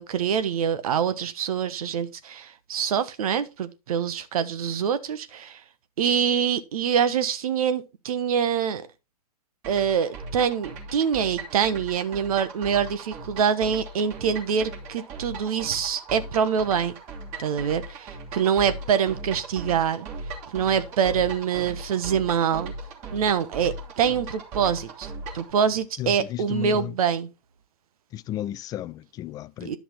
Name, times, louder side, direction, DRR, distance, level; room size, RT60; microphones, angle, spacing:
voice 1, 0.0-5.6 6.0-8.9 9.7-17.0 17.4-20.1 20.5-22.7 23.1-27.3 29.6-29.8, right 7 dB, 60° right, 1.2 m, -25 dB
sound 1, 9.6-25.5, right 2 dB, 35° right, 3.0 m, -38 dB
voice 2, 26.0-26.9 28.1-29.8, left 13 dB, 20° left, 0.4 m, -33 dB
10.5 x 5.8 x 4.4 m
figure-of-eight pair, 110°, 21 cm